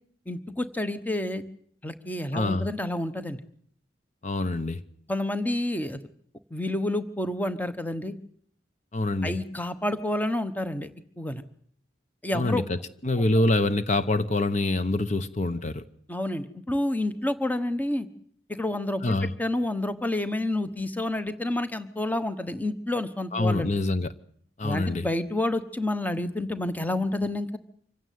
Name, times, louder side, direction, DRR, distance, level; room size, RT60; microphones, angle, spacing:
voice 1, 0.3-1.4 1.8-3.4 5.1-6.0 6.5-8.1 9.2-10.9 11.2-11.4 12.2-12.6 16.1-18.1 18.5-23.7 24.6-27.6, left 1 dB, 10° left, 1.1 m, -29 dB
voice 2, 2.3-2.7 4.2-4.8 8.9-9.4 12.3-12.8 13.0-15.8 19.0-19.3 23.3-24.1 24.6-25.1, left 2 dB, 40° left, 1.0 m, -25 dB
25.5 x 16.0 x 9.3 m
head